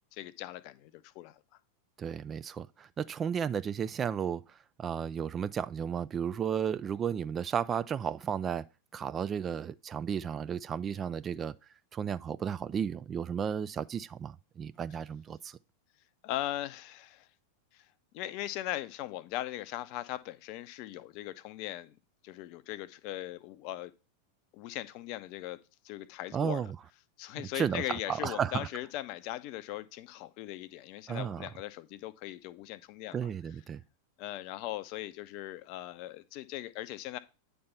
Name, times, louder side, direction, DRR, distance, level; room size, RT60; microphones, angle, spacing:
voice 1, 0.1-1.4 16.2-17.3 17.7-17.8 18.1-21.9 22.2-23.9 24.5-25.6 25.8-26.7 27.2-33.1 34.2-37.2, left 14 dB, 45° left, 0.6 m, -39 dB
voice 2, 2.0-8.6 8.9-11.5 11.9-15.6 26.3-26.8 27.5-28.7 31.1-31.5 33.1-33.8, right 7 dB, 25° right, 0.3 m, -33 dB
9.5 x 3.4 x 5.6 m
figure-of-eight pair, 90°, 0 cm